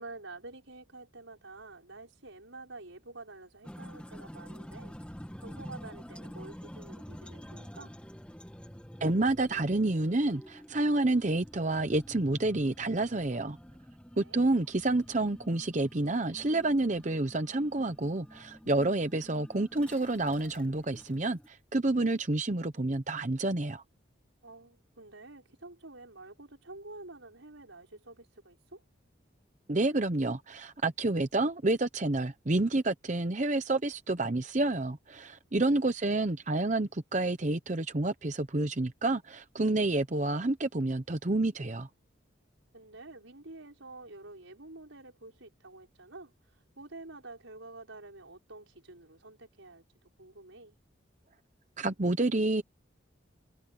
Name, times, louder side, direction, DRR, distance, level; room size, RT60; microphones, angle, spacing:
voice 1, 0.0-5.0 5.4-7.9 14.2-14.4 24.4-28.8 35.6-35.8 42.7-46.3 46.8-50.8, right 2 dB, 85° right, 6.2 m, -49 dB
sound 1, 3.6-21.5, equal, 5° left, 1.5 m, -48 dB
voice 2, 9.0-13.6 14.2-23.8 29.7-41.9 51.8-52.6, right 2 dB, 40° right, 0.8 m, -29 dB
head